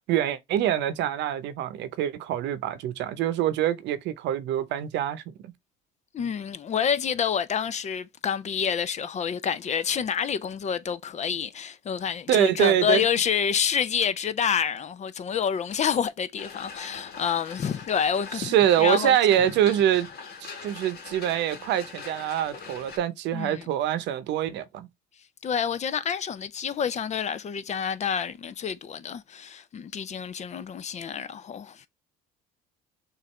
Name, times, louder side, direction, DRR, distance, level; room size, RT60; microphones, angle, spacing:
voice 1, 0.1-5.5 12.3-13.0 18.4-20.1 20.4-24.9, right 11 dB, 70° right, 0.8 m, -25 dB
voice 2, 6.1-19.2 23.3-23.7 25.4-31.9, left 7 dB, 40° left, 0.5 m, -28 dB
sound 1, 16.4-23.0, left 5 dB, 55° left, 1.5 m, -42 dB
6.5 x 2.6 x 3.2 m
supercardioid pair, 80°, 19 cm